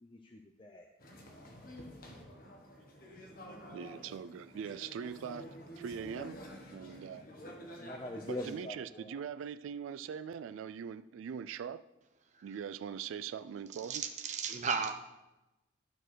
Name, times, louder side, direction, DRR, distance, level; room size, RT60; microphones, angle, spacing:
voice 1, 0.0-0.9 7.4-9.1, left 1 dB, 25° left, 3 dB, 0.5 m, -44 dB
sound 1, 1.0-8.7, equal, 45° left, 1.3 m, -50 dB
voice 2, 3.7-5.5 5.8-6.4 6.7-7.3 8.2-11.8 12.4-14.0, right 7 dB, 90° right, 13 dB, 0.3 m, -41 dB
voice 3, 13.8-14.9, right 5 dB, 35° right, 5 dB, 0.6 m, -34 dB
12.5 x 4.4 x 6.2 m, 1.0 s
head